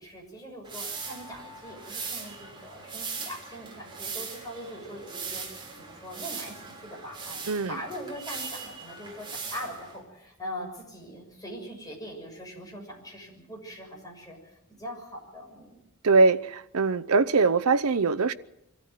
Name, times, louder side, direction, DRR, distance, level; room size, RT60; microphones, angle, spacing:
voice 1, 0.0-5.4 5.8-15.8, equal, 15° left, 6.7 m, -42 dB
sound 1, 0.6-10.0, right 4 dB, 20° right, 3.7 m, -39 dB
voice 2, 16.0-18.3, right 4 dB, 80° right, 0.7 m, -22 dB
24.0 x 14.0 x 9.2 m
head